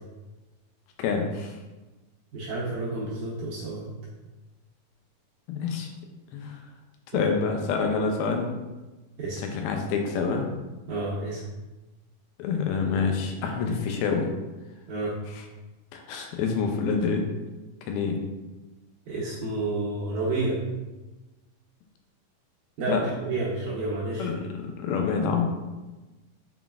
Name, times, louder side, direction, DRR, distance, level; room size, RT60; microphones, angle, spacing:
voice 1, 1.0-1.6 5.5-5.9 6.3-6.6 7.1-8.5 9.5-10.5 12.4-14.3 15.3-15.4 15.9-17.3 17.8-18.2 22.9-23.0 24.2-25.4, left 5 dB, 85° left, 3 dB, 2.4 m, -27 dB
voice 2, 2.3-3.9 7.1-7.3 9.2-9.4 10.9-11.4 14.9-15.2 19.1-20.6 22.8-24.5, right 2 dB, 75° right, -6 dB, 1.9 m, -30 dB
6.0 x 3.8 x 2.3 m, 1.1 s
omnidirectional pair, 4.4 m